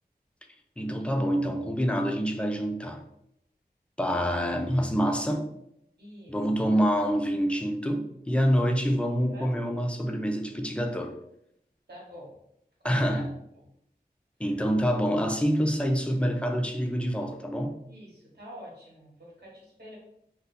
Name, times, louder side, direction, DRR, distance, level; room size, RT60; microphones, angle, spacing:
voice 1, 0.8-3.0 4.0-5.5 6.3-11.1 12.8-13.3 14.4-17.7, equal, 5° left, 4 dB, 0.5 m, -26 dB
voice 2, 6.0-6.6 9.3-9.5 11.9-12.4 12.8-13.3 13.5-13.7 17.9-20.0, equal, 85° right, -4 dB, 1.2 m, -47 dB
2.6 x 2.3 x 4.1 m, 0.77 s
wide cardioid pair, 50°, 17 cm